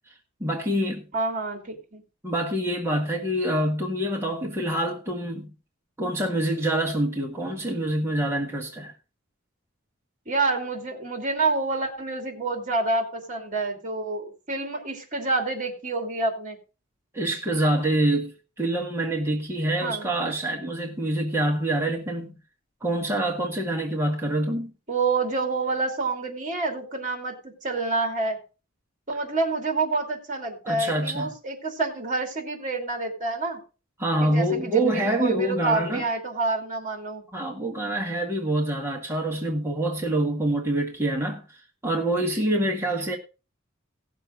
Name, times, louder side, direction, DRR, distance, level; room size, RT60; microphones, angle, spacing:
voice 1, 0.4-1.0 2.2-5.5 6.0-8.9 17.1-18.3 18.6-22.4 22.8-24.7 30.6-31.3 34.0-36.0 37.3-43.2, right 1 dB, 10° right, 1.7 m, -26 dB
voice 2, 1.1-2.0 10.3-16.6 19.8-20.1 24.9-28.4 29.1-33.6 34.2-37.2, right 3 dB, 40° right, 2.7 m, -28 dB
17.0 x 6.8 x 3.8 m
head